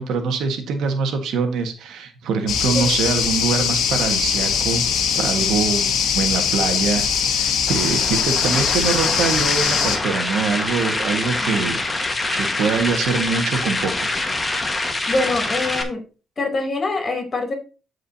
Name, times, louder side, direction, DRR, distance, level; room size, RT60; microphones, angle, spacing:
voice 1, 0.0-4.9 5.1-14.1, right 5 dB, 80° right, 6 dB, 1.6 m, -24 dB
sound 1, 2.5-10.0, left 7 dB, 80° left, 1.6 m, -21 dB
sound 2, 7.7-15.8, left 2 dB, 20° left, 1.5 m, -25 dB
voice 2, 15.1-16.0 16.4-17.5, left 2 dB, 35° left, 3 dB, 3.0 m, -24 dB
13.0 x 4.9 x 2.8 m, 0.34 s
cardioid pair, 90°, 0 cm